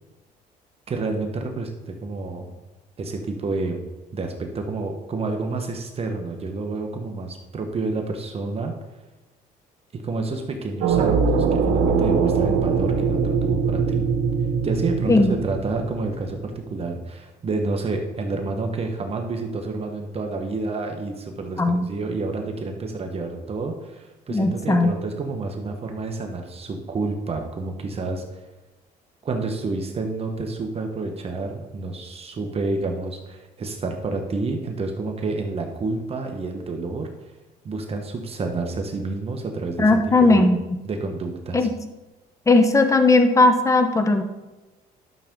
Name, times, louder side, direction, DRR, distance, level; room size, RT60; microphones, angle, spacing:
voice 1, 0.9-2.6 3.0-3.9 4.1-8.7 9.9-14.1 14.6-28.4 29.2-37.1 37.6-40.5 40.8-41.7, right 3 dB, 35° right, 3 dB, 1.2 m, -29 dB
sound 1, 10.8-16.7, right 5 dB, 90° right, 1.3 m, -22 dB
voice 2, 24.3-24.9 39.8-40.6 41.5-41.7 42.5-44.2, left 2 dB, 20° left, 7 dB, 1.0 m, -17 dB
11.5 x 6.7 x 3.8 m, 1.1 s
cardioid pair, 110°, 17 cm